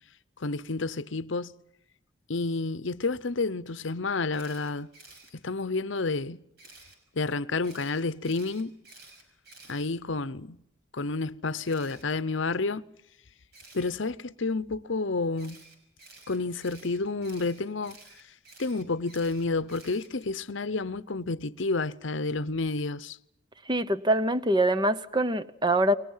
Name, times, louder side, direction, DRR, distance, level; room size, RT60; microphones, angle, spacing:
voice 1, 0.4-1.6 2.3-4.9 5.4-6.4 7.1-8.7 9.7-10.6 10.9-12.9 13.7-15.6 16.3-18.0 18.6-23.2, left 3 dB, 65° left, 0.8 m, -30 dB
Camera, 4.3-5.3 6.6-7.0 7.6-10.4 11.6-12.0 13.5-13.9 15.4-20.3, right 3 dB, 50° right, 6.1 m, -52 dB
voice 2, 23.6-25.9, right 1 dB, 20° right, 0.8 m, -24 dB
29.5 x 23.0 x 5.7 m
head